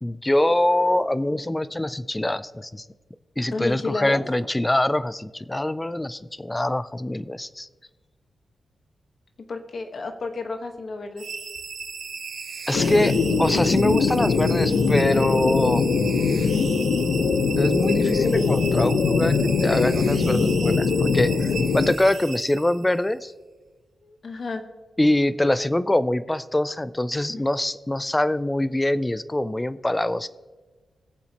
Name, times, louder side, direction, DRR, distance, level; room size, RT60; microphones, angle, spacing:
voice 1, 0.0-2.8 3.4-7.7 12.7-15.9 17.6-23.3 25.0-30.3, left 1 dB, 10° left, 15 dB, 0.4 m, -24 dB
voice 2, 3.5-4.2 9.5-11.2 24.0-24.6 27.3-27.4, left 3 dB, 50° left, 5 dB, 1.2 m, -31 dB
sound 1, 11.2-23.0, right 5 dB, 90° right, 1.9 m, -36 dB
sound 2, 12.7-21.9, left 5 dB, 80° left, 0.7 m, -22 dB
21.5 x 7.2 x 2.9 m, 1.3 s
wide cardioid pair, 120°, 0 cm